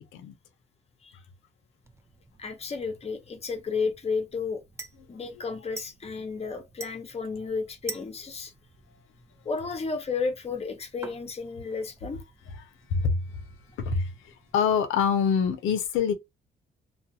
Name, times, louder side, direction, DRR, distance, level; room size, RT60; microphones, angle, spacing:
sound 1, 1.8-14.6, right 3 dB, 15° right, 0.5 m, -49 dB
voice 1, 2.4-4.6 5.1-8.5 9.4-12.2, left 4 dB, 30° left, 0.8 m, -32 dB
voice 2, 12.9-13.2 13.8-16.1, left 6 dB, 85° left, 0.6 m, -25 dB
2.4 x 2.3 x 2.7 m
cardioid pair, 90°, 20 cm